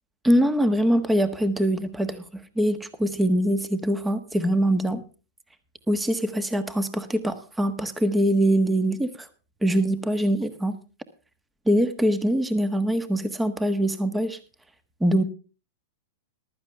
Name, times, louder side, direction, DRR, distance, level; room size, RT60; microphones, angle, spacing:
voice 1, 0.2-2.2 2.6-5.0 5.9-9.3 9.6-10.7 11.7-14.4 15.0-15.2, equal, 5° right, 12 dB, 1.4 m, -23 dB
15.0 x 12.5 x 3.4 m, 0.34 s
hypercardioid pair, 135°, 0 cm